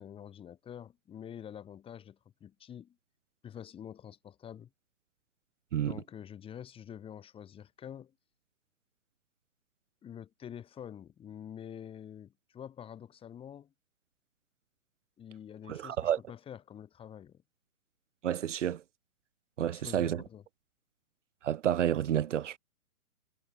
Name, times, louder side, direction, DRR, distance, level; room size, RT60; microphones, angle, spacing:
voice 1, 0.0-3.0 3.4-4.7 5.8-8.1 10.0-13.7 15.2-17.4 19.7-20.4, left 9 dB, 10° left, 2.0 m, -47 dB
voice 2, 15.7-16.2 18.2-18.8 19.6-20.2 21.4-22.6, right 10 dB, 55° right, 1.4 m, -30 dB
hypercardioid pair, 140°, 43 cm